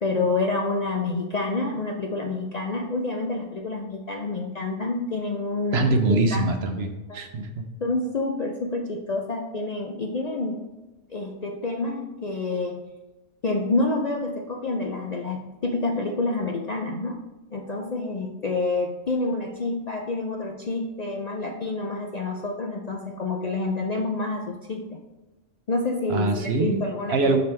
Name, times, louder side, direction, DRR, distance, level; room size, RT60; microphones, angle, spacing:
voice 1, 0.0-6.5 7.1-7.2 7.8-10.6 11.1-12.8 13.4-17.2 17.5-25.0 25.7-27.3, left 3 dB, 50° left, 1 dB, 0.5 m, -28 dB
voice 2, 5.7-7.6 26.1-26.8 27.1-27.4, right 2 dB, 60° right, 6 dB, 0.9 m, -23 dB
6.7 x 5.8 x 3.3 m, 1.1 s
omnidirectional pair, 1.3 m